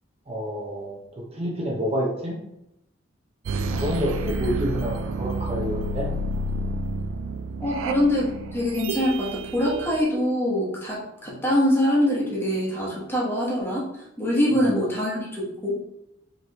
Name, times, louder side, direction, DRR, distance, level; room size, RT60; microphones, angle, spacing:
voice 1, 0.3-1.0 1.3-2.4 3.7-6.1 11.3-11.4 14.5-14.6, equal, 30° right, -3 dB, 0.7 m, -28 dB
sound 1, 3.5-10.0, right 2 dB, 75° right, 0.3 m, -30 dB
voice 2, 7.6-13.8 14.2-15.8, left 1 dB, 10° left, -5 dB, 1.2 m, -24 dB
5.0 x 3.1 x 3.0 m, 0.84 s
head